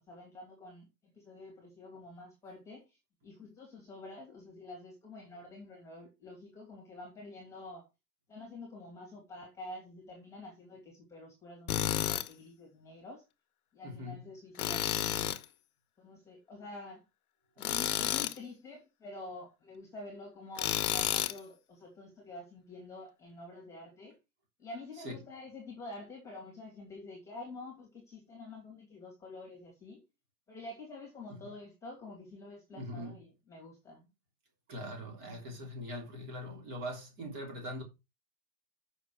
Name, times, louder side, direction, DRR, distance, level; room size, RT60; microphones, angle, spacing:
voice 1, 0.1-7.9 8.3-13.2 13.7-15.3 16.0-17.0 17.6-24.2 24.6-30.0 30.5-34.1, left 2 dB, 5° left, 2.5 m, -48 dB
Tools, 11.7-12.3 14.6-15.4 17.6-18.4 20.6-21.4, left 11 dB, 65° left, 1.2 m, -31 dB
voice 2, 13.8-14.2 17.6-17.7 25.0-25.2 31.3-31.5 32.7-33.2 34.7-37.8, equal, 25° right, 3.3 m, -42 dB
8.2 x 6.2 x 4.7 m
hypercardioid pair, 170°, 47 cm